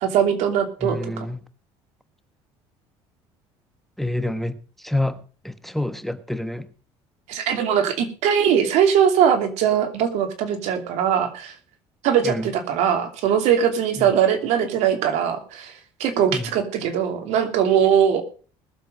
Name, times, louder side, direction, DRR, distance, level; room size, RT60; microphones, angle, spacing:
voice 1, 0.0-1.2 7.3-11.5 12.0-18.2, right 8 dB, 75° right, 6 dB, 2.9 m, -21 dB
voice 2, 0.8-1.4 4.0-6.7 12.2-12.5 14.0-14.1 16.3-16.5, left 1 dB, ahead, 12 dB, 1.1 m, -28 dB
20.5 x 7.6 x 5.0 m, 0.39 s
supercardioid pair, 95°, 12 cm